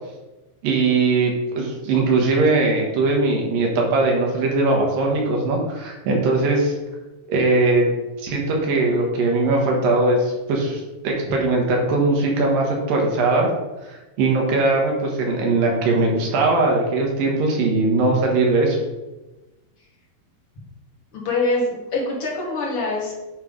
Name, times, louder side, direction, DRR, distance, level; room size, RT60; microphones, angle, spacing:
voice 1, 0.6-6.7 7.3-7.8 8.2-13.5 13.8-18.8, right 3 dB, 70° right, 0 dB, 2.8 m, -20 dB
voice 2, 21.1-23.1, left 2 dB, 45° left, -4 dB, 2.1 m, -24 dB
9.4 x 3.3 x 5.2 m, 1.1 s
omnidirectional pair, 4.4 m